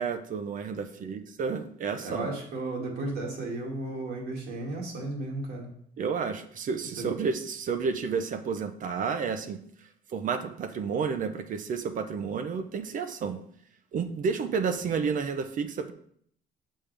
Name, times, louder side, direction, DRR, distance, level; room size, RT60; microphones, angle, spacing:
voice 1, 0.0-2.3 6.0-9.6 10.1-13.4 13.9-15.9, right 5 dB, 50° right, 8 dB, 0.8 m, -31 dB
voice 2, 2.0-5.7 7.0-7.1, right 2 dB, 70° right, -2 dB, 2.3 m, -34 dB
7.2 x 5.5 x 3.4 m, 0.64 s
cardioid pair, 110°, 17 cm